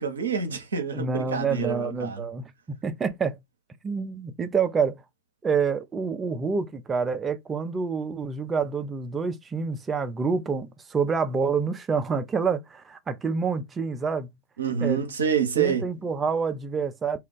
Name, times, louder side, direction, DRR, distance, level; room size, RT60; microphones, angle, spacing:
voice 1, 0.0-2.3 14.6-15.9, right 7 dB, 70° right, 0.7 m, -27 dB
voice 2, 0.9-3.4 3.8-5.0 5.4-14.3 14.8-15.0 15.6-17.2, right 5 dB, 20° right, 0.4 m, -27 dB
2.4 x 2.3 x 3.6 m
figure-of-eight pair, 90°, 0 cm